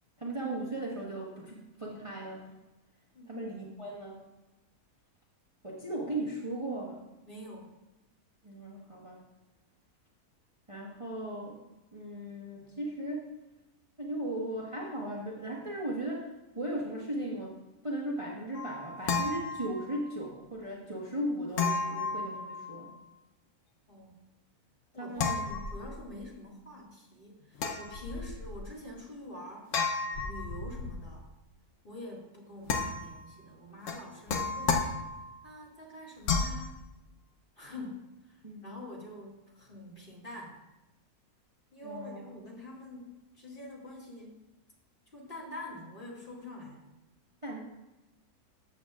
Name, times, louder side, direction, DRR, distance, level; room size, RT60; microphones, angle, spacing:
voice 1, 0.2-2.4 3.3-4.2 5.6-7.0 8.4-9.2 10.7-11.6 11.9-13.3 14.0-17.5 17.8-22.9 24.9-25.4 28.1-28.2 38.4-38.7 41.8-42.2 47.4-47.6, right 1 dB, 20° right, -4 dB, 1.3 m, -37 dB
voice 2, 3.1-3.5 7.3-7.7 23.9-24.2 24.9-29.7 30.2-31.3 31.8-35.0 35.4-36.8 37.6-40.6 41.7-44.4 45.1-46.9, left 1 dB, 35° left, -4 dB, 2.2 m, -46 dB
sound 1, 18.5-20.1 21.6-23.0 25.2-26.2 27.6-28.6 29.7-31.1 32.7-33.3 33.9-35.4 36.2-36.7, left 4 dB, 60° left, 1.1 m, -33 dB
13.5 x 7.4 x 2.4 m, 0.99 s
omnidirectional pair, 1.6 m